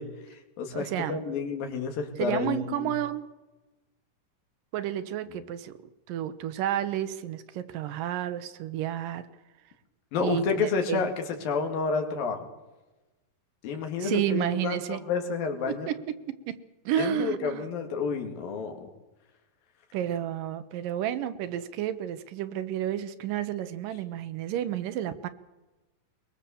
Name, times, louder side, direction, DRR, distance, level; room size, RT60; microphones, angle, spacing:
voice 1, 0.0-2.9 10.1-12.5 13.6-15.9 17.0-18.8, left 5 dB, 90° left, 4 dB, 3.9 m, -30 dB
voice 2, 0.7-1.2 2.2-3.3 4.7-5.8 6.1-9.3 10.2-11.1 14.0-15.0 15.7-16.0 16.3-16.5 16.9-17.7 19.9-25.3, right 11 dB, 80° right, 12 dB, 2.6 m, -31 dB
22.0 x 21.0 x 7.0 m, 1.1 s
omnidirectional pair, 4.0 m